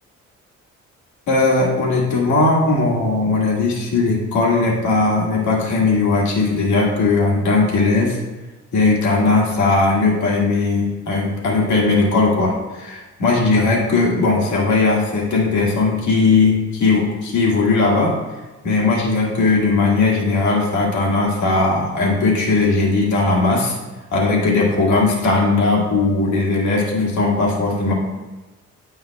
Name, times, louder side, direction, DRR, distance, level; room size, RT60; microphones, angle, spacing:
voice 1, 1.3-8.2 8.7-18.2 18.6-23.8 24.1-27.9, left 3 dB, 75° left, -3 dB, 1.9 m, -18 dB
9.9 x 5.5 x 2.3 m, 1.2 s
cardioid pair, 90°, 30 cm